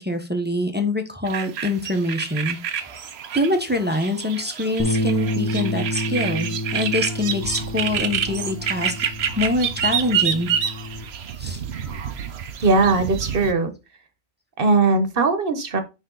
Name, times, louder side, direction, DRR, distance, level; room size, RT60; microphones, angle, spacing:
voice 1, 0.0-2.6 3.3-8.9 9.4-10.5 11.4-11.6, left 2 dB, 10° right, 4 dB, 1.0 m, -24 dB
sound 1, 1.2-13.5, right 8 dB, 85° right, 1.0 m, -28 dB
sound 2, 4.8-11.0, left 1 dB, 15° left, 1.2 m, -29 dB
voice 2, 12.6-13.7 14.6-15.8, right 3 dB, 60° right, 8 dB, 1.3 m, -19 dB
10.0 x 3.4 x 3.9 m, 0.28 s
omnidirectional pair, 1.1 m